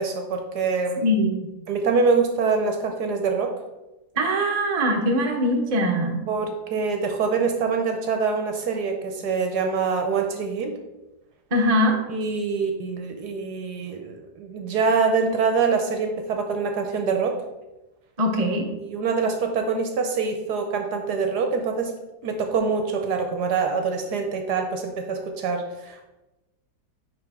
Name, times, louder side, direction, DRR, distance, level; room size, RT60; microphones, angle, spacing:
voice 1, 0.0-1.0 1.7-3.5 6.3-10.7 12.1-17.4 18.8-21.9 22.2-26.1, right 5 dB, 65° right, 4 dB, 1.1 m, -25 dB
voice 2, 1.0-1.5 4.2-6.3 11.5-12.0 18.2-18.7, equal, 35° right, 1 dB, 0.6 m, -22 dB
9.9 x 3.4 x 3.6 m, 1.0 s
omnidirectional pair, 2.0 m